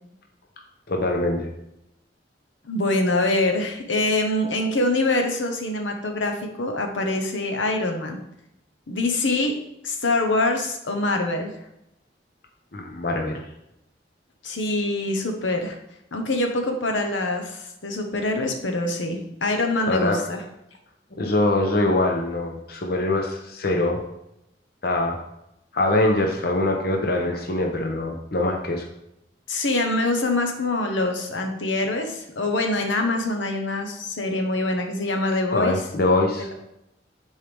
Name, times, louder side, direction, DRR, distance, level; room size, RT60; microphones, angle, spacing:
voice 1, 0.9-1.5 12.7-13.4 19.9-20.2 21.2-24.0 24.8-25.2 25.7-28.8 35.5-36.5, left 2 dB, 55° left, 2 dB, 0.9 m, -23 dB
voice 2, 2.6-8.2 8.9-9.5 9.8-11.5 14.4-15.8 16.1-20.4 29.5-35.8 36.4-36.5, left 2 dB, 90° left, 3 dB, 1.1 m, -24 dB
10.0 x 4.7 x 3.5 m, 0.82 s
head